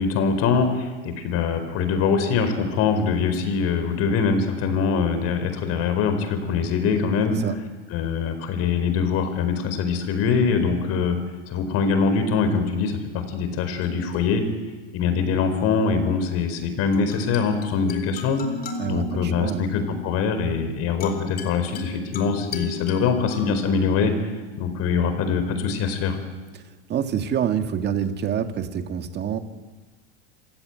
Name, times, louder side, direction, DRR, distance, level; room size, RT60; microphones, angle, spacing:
voice 1, 0.0-7.5 7.9-11.2 11.5-14.4 14.9-18.4 18.9-24.1 24.6-26.2, left 5 dB, 45° left, 9 dB, 4.6 m, -23 dB
sound 1, 13.7-15.5 16.9-25.4, left 4 dB, 25° left, 4.1 m, -38 dB
voice 2, 18.8-19.7 26.5-26.6 26.9-29.4, right 8 dB, 30° right, 8 dB, 2.0 m, -26 dB
26.5 x 16.5 x 9.2 m, 1.3 s
supercardioid pair, 125°, 34 cm